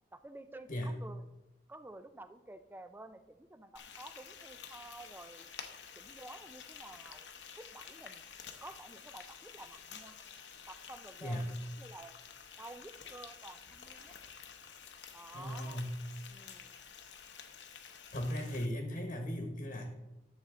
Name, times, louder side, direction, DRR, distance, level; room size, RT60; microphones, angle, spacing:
voice 1, 0.1-1.3 1.7-5.5 6.0-7.3 7.5-8.2 8.6-10.2 10.7-12.1 12.6-14.1 15.1-15.8 16.3-16.8, right 2 dB, 10° right, 11 dB, 0.5 m, -51 dB
Frying (food), 3.8-18.7, left 7 dB, 85° left, 0.9 m, -51 dB
voice 2, 11.2-11.5 15.3-16.0 18.1-19.9, equal, 45° left, 4 dB, 1.2 m, -37 dB
11.0 x 6.8 x 3.7 m, 0.98 s
head